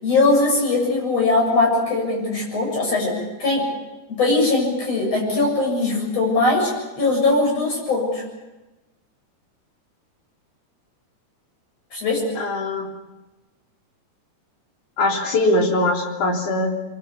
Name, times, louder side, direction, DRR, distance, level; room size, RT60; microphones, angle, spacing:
voice 1, 0.0-3.1 3.4-3.6 4.2-8.2 11.9-12.2, left 3 dB, 55° left, -2 dB, 8.5 m, -20 dB
voice 2, 12.3-12.9 15.0-16.8, left 2 dB, 85° left, 0 dB, 5.0 m, -21 dB
25.5 x 24.0 x 7.0 m, 1.0 s
omnidirectional pair, 3.5 m